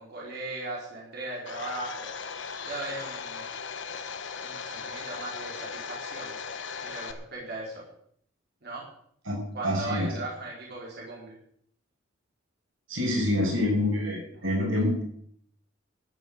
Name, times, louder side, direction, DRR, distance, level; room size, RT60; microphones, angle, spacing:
voice 1, 0.0-3.5 4.4-6.4 6.8-7.8 8.6-8.8 9.5-11.3 14.3-14.4, right 2 dB, 55° right, -4 dB, 4.6 m, -38 dB
Domestic sounds home sounds, 1.5-7.1, left 5 dB, 65° left, 1.4 m, -38 dB
voice 2, 9.6-10.1 12.9-15.0, left 1 dB, 90° right, -1 dB, 6.2 m, -26 dB
13.5 x 8.2 x 8.0 m, 0.67 s
head